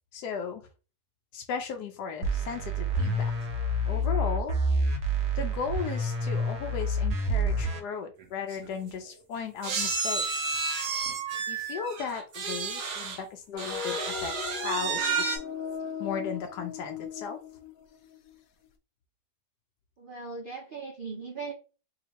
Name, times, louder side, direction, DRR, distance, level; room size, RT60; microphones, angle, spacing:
voice 1, 0.1-0.6 1.3-3.3 3.9-4.6 5.4-10.6 11.5-15.4 16.0-17.4, left 6 dB, 90° left, 4 dB, 1.2 m, -36 dB
sound 1, 2.2-7.8, right 1 dB, 55° right, 1.0 m, -28 dB
sound 2, 8.2-8.3 8.5-8.7 9.6-13.2 13.6-15.4, right 5 dB, 90° right, 1.5 m, -31 dB
sound 3, 13.5-18.4, left 8 dB, 70° left, 1.0 m, -38 dB
voice 2, 20.0-21.5, right 4 dB, 75° right, 2 dB, 0.4 m, -38 dB
4.2 x 2.9 x 2.9 m, 0.34 s
omnidirectional pair, 1.7 m